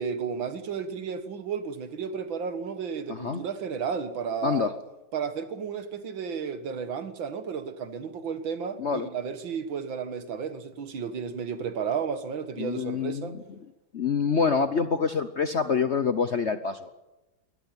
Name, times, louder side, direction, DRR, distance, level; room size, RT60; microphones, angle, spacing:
voice 1, 0.0-4.8 5.1-13.3, right 6 dB, 75° right, 2.3 m, -33 dB
voice 2, 3.1-3.4 4.4-4.7 8.8-9.1 12.6-13.4 13.9-16.9, left 5 dB, 50° left, 0.8 m, -26 dB
22.5 x 18.0 x 8.9 m
omnidirectional pair, 2.1 m